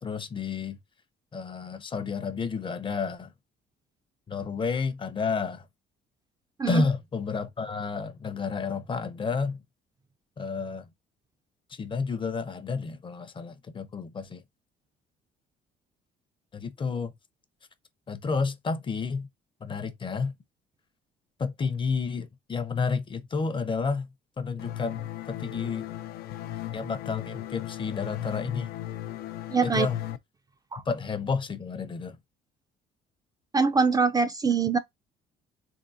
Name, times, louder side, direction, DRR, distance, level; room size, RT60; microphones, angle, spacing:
voice 1, 0.0-0.8 1.3-3.3 4.3-5.7 6.7-9.6 10.4-10.9 11.7-14.4 16.5-17.1 18.1-19.3 19.6-20.3 21.4-24.1 24.4-25.9 26.7-28.7 29.6-30.0 30.9-32.2, left 5 dB, 30° left, 0.7 m, -30 dB
sound 1, 24.6-30.2, left 13 dB, 65° left, 0.5 m, -36 dB
voice 2, 29.5-29.9 30.7-30.8 33.5-34.8, right 5 dB, 20° right, 0.4 m, -23 dB
3.7 x 3.7 x 2.6 m
cardioid pair, 110°, 17 cm